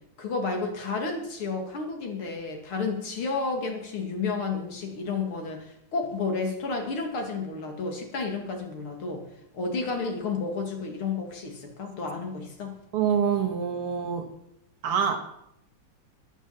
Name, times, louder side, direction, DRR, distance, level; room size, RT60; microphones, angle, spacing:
voice 1, 0.2-9.2 9.5-12.7, left 4 dB, 75° left, 3 dB, 3.2 m, -31 dB
voice 2, 12.9-14.3 14.8-15.2, right 7 dB, 85° right, 6 dB, 2.5 m, -25 dB
11.5 x 10.5 x 7.2 m, 0.79 s
omnidirectional pair, 2.4 m